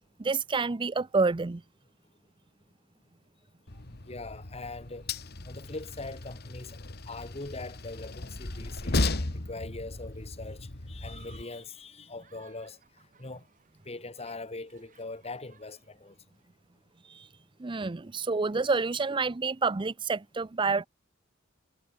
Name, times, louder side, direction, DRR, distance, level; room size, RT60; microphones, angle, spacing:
voice 1, 0.2-1.6 17.1-17.3 17.6-20.9, right 4 dB, 25° right, 0.5 m, -28 dB
Train, 3.7-11.4, left 2 dB, 55° left, 1.9 m, -35 dB
voice 2, 4.1-5.1 5.4-6.8 7.1-9.1 9.3-12.8 13.2-13.4 13.8-16.1, left 3 dB, 30° left, 1.7 m, -41 dB
Human group actions, 9.9-16.5, right 6 dB, 45° right, 8.0 m, -62 dB
head